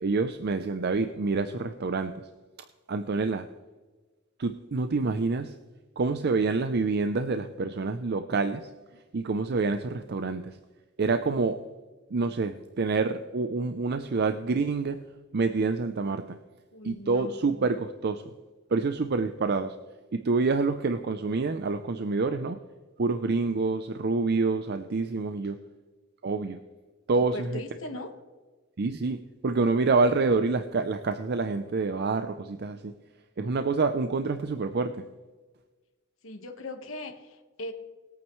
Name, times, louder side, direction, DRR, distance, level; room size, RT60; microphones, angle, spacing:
voice 1, 0.0-2.3 2.9-3.5 4.4-5.5 6.0-8.7 9.1-10.6 11.0-11.6 12.1-15.0 15.3-16.4 16.8-18.3 18.7-19.7 20.1-22.6 23.0-25.6 26.2-26.6 27.1-27.6 28.8-32.9 33.4-35.0, right 3 dB, 55° right, 9 dB, 0.5 m, -27 dB
voice 2, 16.7-17.3 23.5-23.6 27.2-28.1 36.2-37.7, left 1 dB, 80° left, 6 dB, 1.4 m, -39 dB
21.0 x 8.8 x 3.1 m, 1.3 s
head